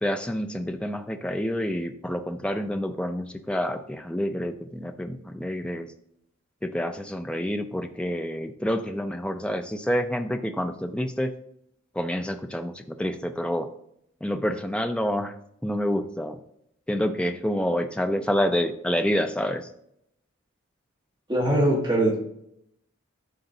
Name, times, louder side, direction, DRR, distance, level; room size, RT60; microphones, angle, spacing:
voice 1, 0.0-5.9 6.6-11.3 11.9-13.7 14.2-15.3 15.6-16.4 16.9-19.7, equal, 5° left, 7 dB, 0.4 m, -28 dB
voice 2, 21.3-22.1, right 1 dB, 20° right, -5 dB, 1.3 m, -21 dB
11.5 x 3.9 x 2.7 m, 0.75 s
head